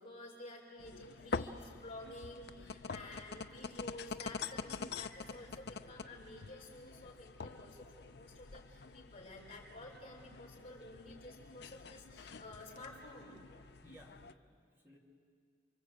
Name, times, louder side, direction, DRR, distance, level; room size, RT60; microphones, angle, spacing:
voice 1, 0.0-13.5, left 1 dB, 35° left, -3 dB, 6.0 m, -51 dB
sound 1, 0.8-14.3, left 4 dB, 60° left, 0.7 m, -46 dB
voice 2, 13.8-15.0, equal, 10° right, -1 dB, 2.8 m, -60 dB
29.0 x 24.5 x 8.2 m, 2.3 s
head